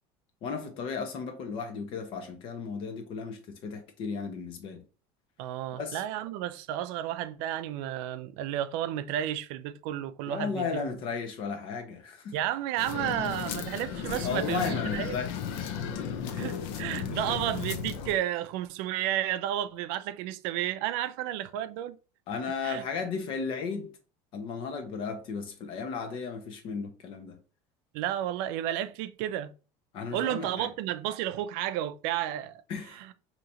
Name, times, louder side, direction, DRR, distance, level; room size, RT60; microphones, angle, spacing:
voice 1, 0.4-4.8 5.7-6.0 10.3-12.3 14.2-15.8 16.2-16.5 17.0-17.4 22.3-23.9 24.3-27.4 29.9-30.7 32.7-33.0, left 5 dB, 45° left, 1.0 m, -35 dB
voice 2, 5.4-11.0 12.3-15.2 16.4-22.0 22.6-22.8 27.9-29.5 30.1-32.6 32.9-33.1, right 12 dB, 65° right, 0.4 m, -32 dB
sound 1, 12.8-18.2, left 7 dB, 70° left, 0.7 m, -34 dB
5.0 x 2.8 x 2.8 m
cardioid pair, 160°, 12 cm